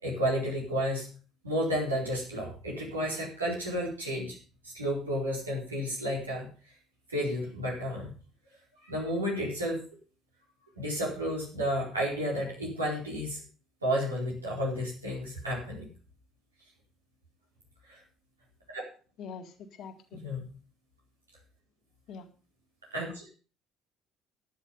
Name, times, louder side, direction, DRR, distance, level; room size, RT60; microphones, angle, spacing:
voice 1, 0.0-1.1 1.4-4.4 4.6-6.5 7.1-8.1 8.8-9.8 10.8-13.4 13.8-15.9 17.9-18.0 18.7-18.8 20.2-20.4 22.9-23.3, equal, 85° right, -3 dB, 4.4 m, -32 dB
voice 2, 19.2-20.2 22.1-22.2, left 6 dB, 50° left, 7 dB, 1.9 m, -44 dB
11.5 x 10.0 x 5.4 m, 0.37 s
figure-of-eight pair, 50°, 0 cm